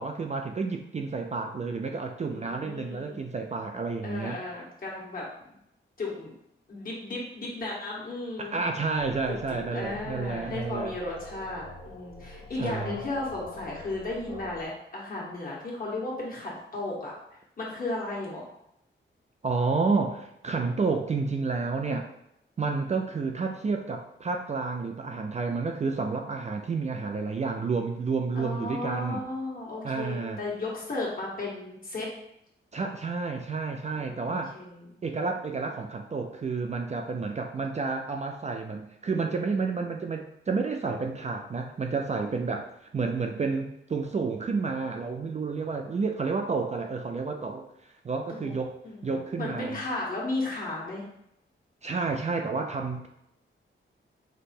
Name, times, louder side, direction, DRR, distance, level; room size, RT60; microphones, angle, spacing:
voice 1, 0.0-4.4 8.4-10.9 12.6-13.0 19.4-22.1 22.6-29.2 29.8-30.4 32.7-34.6 35.0-42.7 42.9-47.7 48.0-48.8 49.0-49.8 51.8-53.1, right 4 dB, 35° right, 3 dB, 0.4 m, -30 dB
voice 2, 2.3-3.1 4.0-5.3 6.0-6.3 6.7-8.5 9.3-17.1 17.6-18.5 28.3-32.1 34.0-35.0 48.3-48.5 48.8-51.0, left 2 dB, 45° left, -5 dB, 1.6 m, -35 dB
sound 1, 9.0-14.6, left 2 dB, 75° left, 1.1 m, -44 dB
5.1 x 2.1 x 4.2 m, 0.79 s
wide cardioid pair, 120°, 21 cm